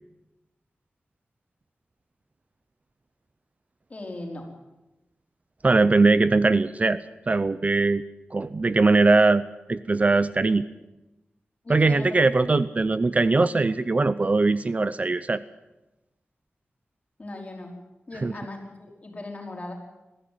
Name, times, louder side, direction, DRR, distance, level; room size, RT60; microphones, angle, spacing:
voice 1, 3.9-4.5 11.6-12.2 17.2-17.7 18.1-19.7, left 2 dB, 35° left, 1 dB, 4.9 m, -38 dB
voice 2, 5.6-8.0 8.3-9.4 9.7-10.7 11.7-15.4 18.2-18.3, right 3 dB, 35° right, 14 dB, 0.6 m, -21 dB
22.0 x 14.5 x 9.5 m, 1.0 s
wide cardioid pair, 125°, 4 cm